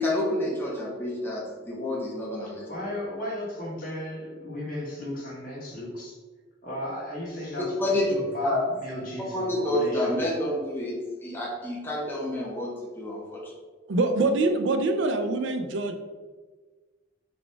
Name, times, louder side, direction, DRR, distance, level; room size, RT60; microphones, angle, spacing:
voice 1, 0.0-2.9 7.6-8.6 9.3-13.5, left 1 dB, 10° left, -4 dB, 0.6 m, -29 dB
voice 2, 2.4-6.2 6.6-10.2, left 1 dB, 45° left, -6 dB, 1.4 m, -35 dB
voice 3, 13.9-16.0, right 2 dB, 70° right, 6 dB, 0.4 m, -24 dB
4.1 x 2.3 x 4.5 m, 1.4 s
head